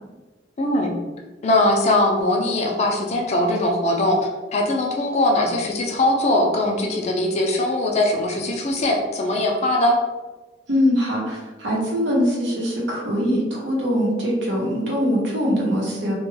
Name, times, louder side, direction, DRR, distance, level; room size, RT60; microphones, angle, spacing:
voice 1, 0.6-0.9 1.4-10.0, left 1 dB, 35° left, 1 dB, 0.4 m, -21 dB
voice 2, 10.7-16.1, equal, 75° right, -3 dB, 0.8 m, -22 dB
2.2 x 2.2 x 3.1 m, 1.2 s
head